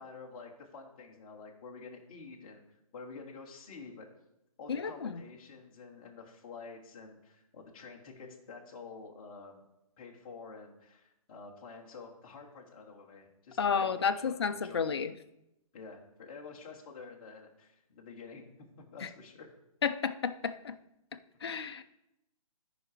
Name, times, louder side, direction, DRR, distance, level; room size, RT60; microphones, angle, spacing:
voice 1, 0.0-2.6 2.9-4.1 4.6-9.6 10.0-15.0 15.7-19.5, left 4 dB, 15° left, -3 dB, 1.0 m, -49 dB
voice 2, 4.7-5.2 13.6-15.1 19.0-19.1 19.8-20.8 21.4-21.8, left 6 dB, 45° left, 8 dB, 0.5 m, -31 dB
13.0 x 5.0 x 4.8 m, 0.88 s
hypercardioid pair, 180°, 18 cm